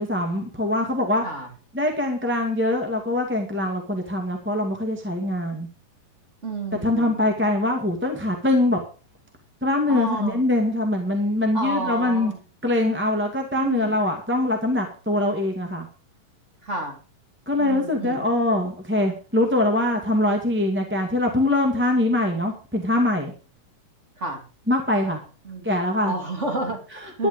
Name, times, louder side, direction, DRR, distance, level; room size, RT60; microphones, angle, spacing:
voice 1, 0.0-1.2 1.7-5.7 6.7-8.8 9.6-12.3 12.6-15.9 17.4-23.3 24.7-25.2 25.6-26.1 27.2-27.3, left 1 dB, 5° right, 3 dB, 1.6 m, -23 dB
voice 2, 6.4-7.2 9.9-10.4 11.5-12.4 13.6-14.0 16.6-17.0 17.6-18.2 24.2-24.4 25.5-25.7 26.1-27.3, right 2 dB, 20° right, 2 dB, 3.4 m, -30 dB
12.0 x 10.5 x 5.2 m, 0.36 s
omnidirectional pair, 3.8 m